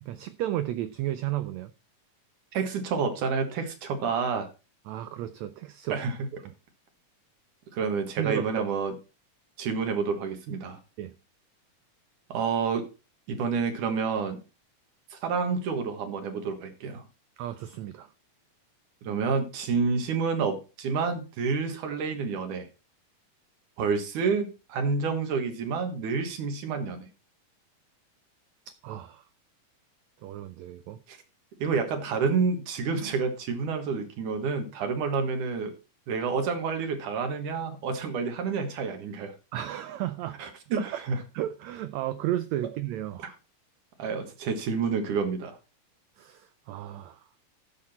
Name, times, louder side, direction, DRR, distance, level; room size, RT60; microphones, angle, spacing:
voice 1, 0.0-1.7 4.9-6.0 6.4-6.5 8.2-8.7 11.0-11.1 17.4-18.1 28.8-29.2 30.2-31.0 39.5-40.4 40.7-41.0 41.3-43.4 46.2-47.2, right 13 dB, 90° right, 1.5 m, -33 dB
voice 2, 2.5-4.5 5.9-6.1 7.7-8.9 9.6-10.8 12.3-12.8 13.3-14.4 15.1-17.0 19.0-22.7 23.8-27.1 31.1-31.2 31.6-35.7 36.1-39.3 40.4-41.2 44.0-45.6, right 5 dB, 70° right, 2.9 m, -29 dB
14.0 x 6.0 x 4.2 m
omnidirectional pair, 3.8 m